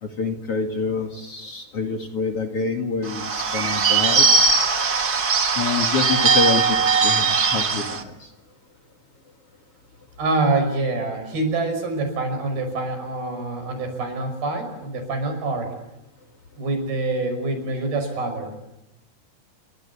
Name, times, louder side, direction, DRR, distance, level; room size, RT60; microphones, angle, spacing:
voice 1, 0.0-4.3 5.6-8.1, left 4 dB, 45° left, 4 dB, 2.6 m, -27 dB
Bird / Bell, 3.0-8.0, right 4 dB, 45° right, 1.2 m, -20 dB
voice 2, 10.2-15.7 16.6-18.5, right 2 dB, 75° right, 7 dB, 7.7 m, -25 dB
29.5 x 23.5 x 8.5 m, 0.93 s
omnidirectional pair, 4.4 m